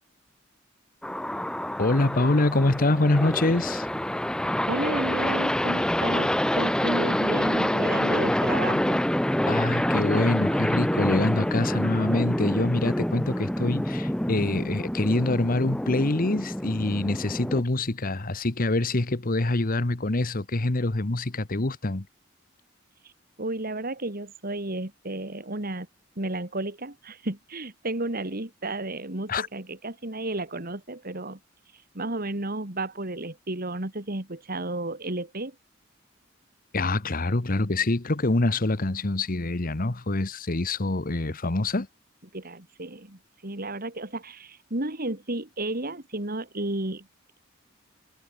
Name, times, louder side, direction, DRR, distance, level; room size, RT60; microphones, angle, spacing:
sound 1, 1.0-17.6, left 1 dB, 5° left, 0.5 m, -27 dB
voice 1, 1.8-3.9 9.5-22.1 29.3-29.5 36.7-41.9, left 2 dB, 45° left, 1.3 m, -25 dB
voice 2, 4.7-9.0 23.0-23.1 23.4-25.9 26.2-31.4 31.9-35.6 42.3-47.1, right 2 dB, 45° right, 2.8 m, -32 dB
head